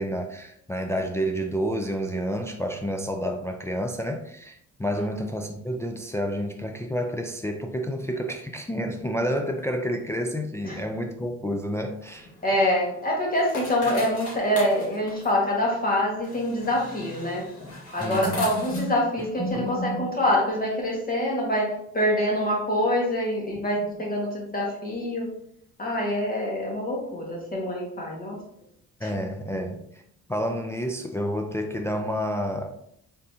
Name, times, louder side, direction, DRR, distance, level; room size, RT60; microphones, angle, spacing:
voice 1, 0.0-12.3 18.0-18.5 19.2-19.3 19.5-19.7 29.0-29.8 30.3-32.7, equal, 10° left, 2 dB, 0.4 m, -29 dB
sound 1, 12.0-19.7, left 2 dB, 55° left, 1.6 m, -40 dB
voice 2, 12.4-17.5 17.9-25.3 25.8-28.4 29.0-29.1, left 1 dB, 30° left, -2 dB, 1.5 m, -25 dB
4.1 x 3.7 x 2.7 m, 0.73 s
cardioid pair, 90°, 30 cm